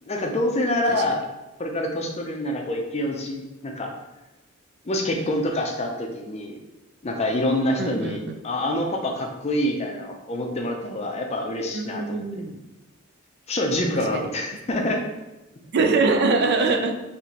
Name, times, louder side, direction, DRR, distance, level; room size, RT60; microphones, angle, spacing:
voice 1, 0.0-1.2 1.6-3.9 4.8-6.6 7.0-8.2 8.4-12.4 13.5-15.1 15.7-15.8, left 1 dB, 30° left, 2 dB, 0.5 m, -26 dB
voice 2, 7.8-8.2 11.7-12.6 14.1-14.2 15.7-16.9, right 3 dB, 50° right, 5 dB, 0.3 m, -23 dB
4.6 x 3.0 x 2.8 m, 1.0 s
head